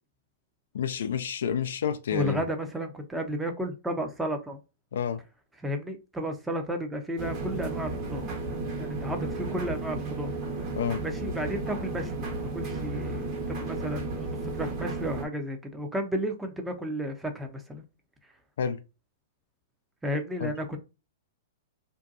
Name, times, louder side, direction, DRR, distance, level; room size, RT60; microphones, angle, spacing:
voice 1, 0.7-2.5 4.9-5.2 10.7-11.0 18.6-18.8 20.4-20.5, left 8 dB, 70° left, 0.3 m, -29 dB
voice 2, 2.1-4.6 5.6-8.3 8.8-10.3 11.0-17.8 20.0-20.8, equal, 10° right, 0.6 m, -33 dB
sound 1, 7.2-15.3, right 3 dB, 40° right, 1.0 m, -33 dB
2.6 x 2.2 x 2.4 m
hypercardioid pair, 110°, 0 cm